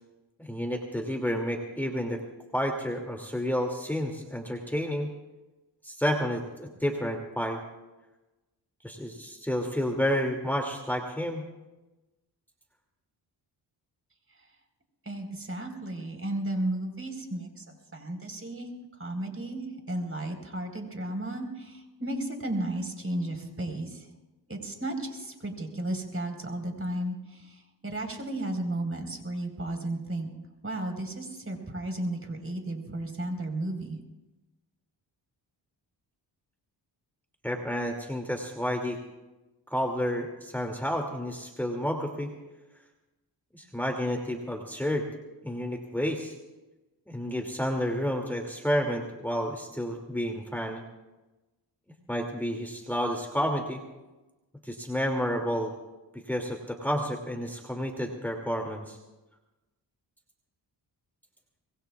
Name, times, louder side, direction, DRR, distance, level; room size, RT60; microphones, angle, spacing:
voice 1, 0.4-2.2 2.5-5.1 5.8-7.6 8.8-11.4 37.4-39.0 39.7-42.3 43.5-45.1 45.4-46.3 47.1-50.8 52.1-53.8 54.6-55.7 56.1-59.0, equal, 5° left, 1 dB, 2.5 m, -30 dB
voice 2, 15.0-18.7 19.0-24.1 24.5-30.3 30.6-34.0, right 1 dB, 30° right, 4 dB, 4.3 m, -34 dB
25.0 x 21.5 x 2.4 m, 1.1 s
cardioid pair, 65°, 44 cm